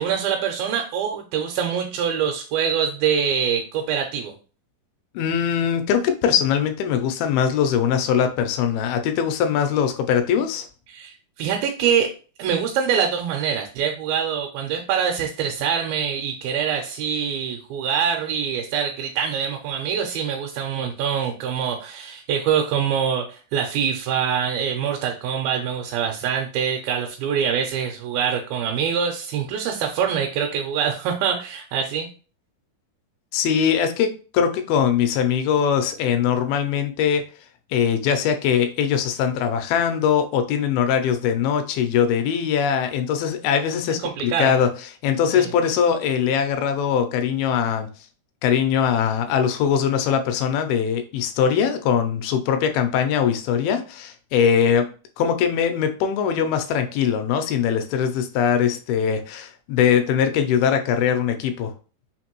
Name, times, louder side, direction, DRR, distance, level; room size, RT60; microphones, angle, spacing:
voice 1, 0.0-4.3 10.9-12.1 12.4-32.1 44.0-44.5 45.4-45.5, right 7 dB, 80° right, 2 dB, 2.4 m, -24 dB
voice 2, 5.2-10.7 33.3-37.2 37.7-44.7 45.0-47.9 48.4-54.9 55.2-61.7, left 8 dB, 85° left, 7 dB, 2.5 m, -21 dB
5.8 x 2.6 x 2.9 m, 0.37 s
omnidirectional pair, 4.3 m